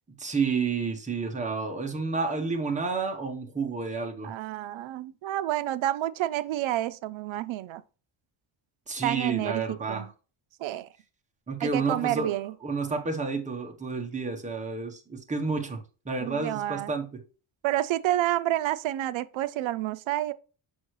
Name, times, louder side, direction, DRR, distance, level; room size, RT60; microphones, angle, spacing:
voice 1, 0.2-4.3 8.9-10.1 11.5-12.3 12.6-17.1, right 4 dB, 15° right, 0.9 m, -30 dB
voice 2, 4.2-7.8 9.0-10.1 10.6-10.9 11.6-12.5 16.2-16.9 17.6-20.3, right 14 dB, 70° right, 0.5 m, -29 dB
6.3 x 5.3 x 3.1 m
wide cardioid pair, 165°, 50 cm